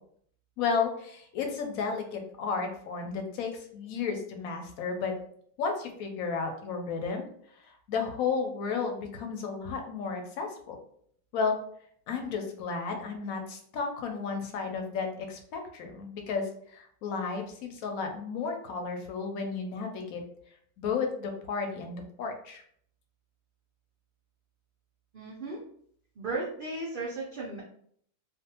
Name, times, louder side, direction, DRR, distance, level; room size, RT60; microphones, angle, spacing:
voice 1, 0.6-5.2 5.6-7.3 7.5-10.8 11.3-11.6 12.1-20.2 20.8-22.6, left 5 dB, 75° left, 4 dB, 1.0 m, -33 dB
voice 2, 25.1-25.6 26.2-27.6, right 2 dB, 80° right, -4 dB, 0.4 m, -35 dB
2.5 x 2.3 x 2.8 m, 0.63 s
omnidirectional pair, 1.6 m